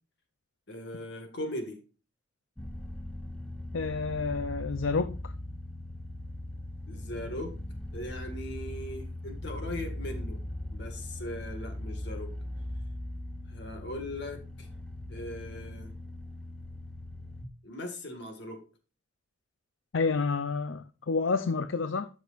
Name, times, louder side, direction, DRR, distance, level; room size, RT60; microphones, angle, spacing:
voice 1, 0.7-1.8 6.9-7.5 7.9-10.4 10.7-12.3 13.5-14.7 15.1-15.9 17.6-18.6, left 1 dB, 60° left, 1.9 m, -39 dB
sound 1, 2.6-17.5, left 1 dB, 5° left, 0.9 m, -39 dB
voice 2, 3.7-5.3 19.9-22.1, left 4 dB, 80° left, 0.6 m, -29 dB
13.0 x 6.3 x 2.5 m
head